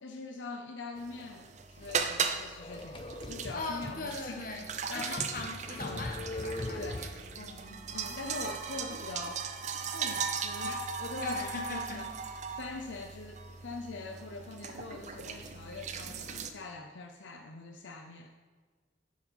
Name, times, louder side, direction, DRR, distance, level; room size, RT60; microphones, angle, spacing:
voice 1, 0.0-4.6 4.9-5.4 5.8-6.1 6.8-7.1 7.9-9.5 9.9-12.1 12.5-18.3, left 3 dB, 80° left, 5 dB, 0.5 m, -43 dB
sound 1, 1.0-16.5, right 5 dB, 40° right, 0.5 m, -38 dB
sound 2, 2.6-4.0 4.5-4.6 5.0-7.4, left 2 dB, 25° left, 0.5 m, -40 dB
voice 2, 3.5-7.8 11.2-12.0, left 2 dB, 45° left, 2 dB, 1.2 m, -40 dB
9.4 x 4.8 x 5.4 m, 1.5 s
head